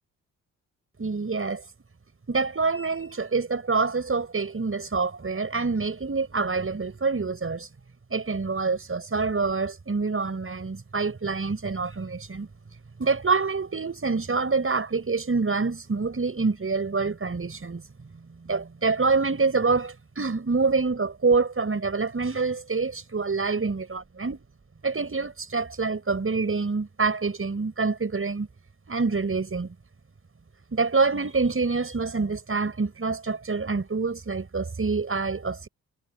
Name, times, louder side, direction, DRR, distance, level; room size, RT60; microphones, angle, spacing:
voice 1, 1.0-1.6 2.3-7.7 8.1-12.5 13.0-17.8 18.4-24.4 24.8-28.5 28.9-29.7 30.7-35.7, right 4 dB, 35° right, 6.3 m, -26 dB
hypercardioid pair, 40°, 40 cm